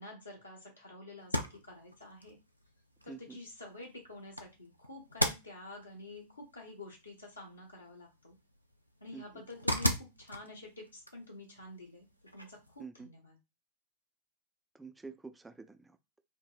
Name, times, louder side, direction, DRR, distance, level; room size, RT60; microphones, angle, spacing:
voice 1, 0.0-2.4 3.0-8.4 9.0-12.1 12.3-13.4, left 2 dB, 75° left, 1.1 m, -49 dB
sound 1, 1.2-12.8, equal, 90° right, 0.4 m, -40 dB
voice 2, 3.1-3.4 9.1-9.4 12.8-13.1 14.7-16.0, right 4 dB, 10° right, 0.3 m, -48 dB
3.2 x 2.0 x 2.4 m
figure-of-eight pair, 90°, 0 cm